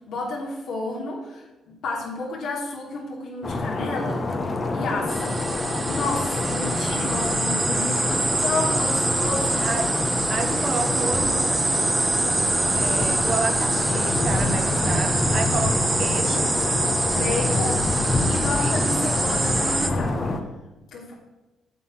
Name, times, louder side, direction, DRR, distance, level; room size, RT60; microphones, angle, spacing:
voice 1, 0.1-1.5 1.8-4.2 4.7-5.3 5.8-9.6 17.1-20.3 20.9-21.1, left 3 dB, 75° left, -3 dB, 3.0 m, -31 dB
sound 1, 3.4-20.4, left 2 dB, 35° left, 1.3 m, -26 dB
sound 2, 5.1-19.9, right 2 dB, 20° right, 1.0 m, -25 dB
voice 2, 9.6-9.9 10.3-11.9 12.7-16.5 18.4-18.8, right 4 dB, 55° right, 8 dB, 1.2 m, -30 dB
8.0 x 7.2 x 6.0 m, 1.1 s
cardioid pair, 90°, 0 cm